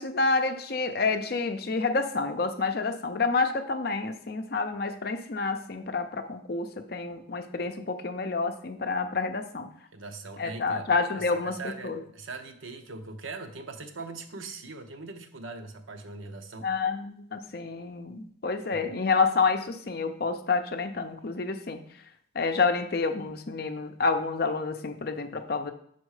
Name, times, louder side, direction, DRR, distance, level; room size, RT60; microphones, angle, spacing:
voice 1, 0.0-9.7 10.4-12.0 16.6-21.8 22.3-25.7, left 4 dB, 50° left, 7 dB, 0.5 m, -28 dB
voice 2, 9.9-10.9 11.2-16.7 18.7-18.8, right 3 dB, 85° right, 6 dB, 0.8 m, -41 dB
6.3 x 4.2 x 4.8 m, 0.64 s
head